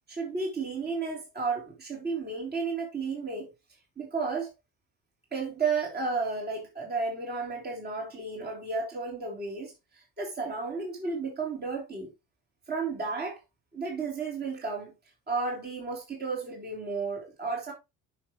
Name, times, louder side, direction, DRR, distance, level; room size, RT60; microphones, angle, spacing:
voice 1, 0.1-3.5 4.0-4.5 5.3-9.7 10.2-12.1 12.7-13.4 13.7-14.9 15.3-17.7, right 4 dB, 25° right, 3.4 m, -32 dB
11.5 x 6.0 x 3.1 m
cardioid pair, 135°, 39 cm